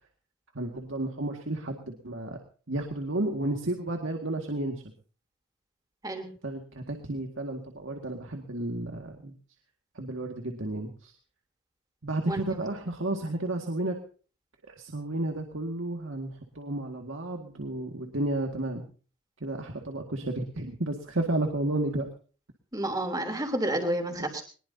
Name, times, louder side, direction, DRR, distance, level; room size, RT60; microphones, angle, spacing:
voice 1, 0.5-2.4 2.7-4.8 6.4-9.3 10.0-11.1 12.0-13.9 14.7-18.9 19.4-22.1, right 2 dB, 85° right, 3 dB, 2.0 m, -32 dB
voice 2, 22.7-24.4, right 1 dB, 20° right, 3 dB, 3.3 m, -30 dB
22.5 x 20.5 x 2.8 m, 0.39 s
head